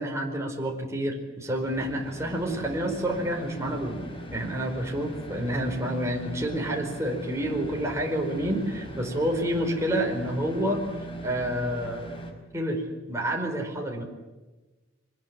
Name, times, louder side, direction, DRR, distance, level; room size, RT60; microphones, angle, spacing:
voice 1, 0.0-4.0 4.3-10.8 11.2-12.1 12.5-12.8 13.1-14.0, right 1 dB, 15° right, 0 dB, 4.9 m, -29 dB
sound 1, 1.4-12.3, right 1 dB, 25° left, 4.8 m, -40 dB
24.5 x 20.5 x 9.2 m, 1.2 s
head